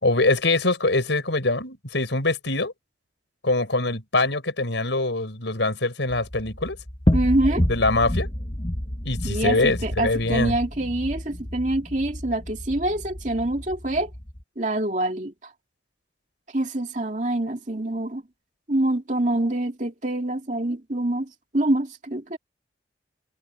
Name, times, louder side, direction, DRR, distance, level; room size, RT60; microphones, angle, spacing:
voice 1, 0.0-2.7 3.4-6.8 7.7-8.3 9.0-10.5, left 2 dB, 80° left, 4.9 m, -23 dB
sound 1, 6.1-14.4, left 1 dB, 25° left, 1.3 m, -29 dB
voice 2, 7.1-7.7 9.2-14.1 14.6-15.3 16.5-18.2 18.7-22.4, right 1 dB, 40° right, 2.6 m, -25 dB
head